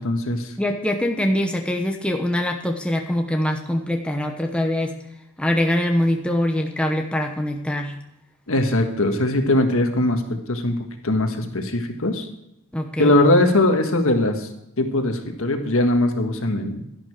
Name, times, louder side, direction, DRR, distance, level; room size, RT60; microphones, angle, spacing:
voice 1, 0.0-0.5 8.5-10.2 10.5-10.8 11.0-12.3 13.0-14.5 14.8-16.8, left 1 dB, 65° left, 5 dB, 1.6 m, -20 dB
voice 2, 0.6-5.0 5.4-8.0 12.7-13.1, left 1 dB, 5° left, 3 dB, 0.9 m, -23 dB
12.0 x 11.0 x 4.9 m, 0.82 s
head